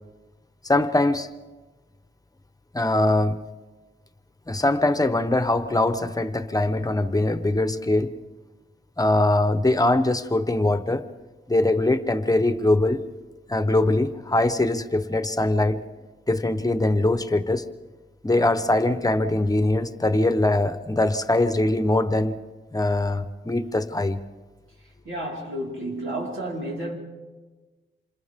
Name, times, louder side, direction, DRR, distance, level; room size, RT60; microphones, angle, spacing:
voice 1, 0.6-1.3 2.7-3.4 4.5-8.1 9.0-11.1 11.5-13.0 13.5-15.8 16.3-17.6 18.2-22.4 22.7-24.2, left 2 dB, 15° left, 1.1 m, -22 dB
voice 2, 25.0-27.0, right 1 dB, 75° right, 4.8 m, -31 dB
28.0 x 27.0 x 3.7 m
wide cardioid pair, 95°, 21 cm